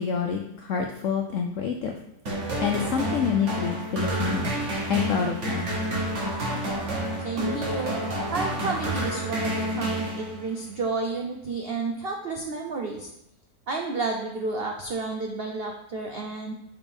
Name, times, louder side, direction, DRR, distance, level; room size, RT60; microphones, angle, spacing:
voice 1, 0.0-1.9 2.6-4.5 4.9-5.7, left 7 dB, 80° left, 3 dB, 0.7 m, -27 dB
sound 1, 2.3-10.6, right 1 dB, 45° right, 1.6 m, -29 dB
voice 2, 7.2-8.0 8.3-13.1 13.7-16.5, right 3 dB, 85° right, 2 dB, 0.5 m, -31 dB
6.1 x 5.1 x 3.6 m, 0.81 s
omnidirectional pair, 1.9 m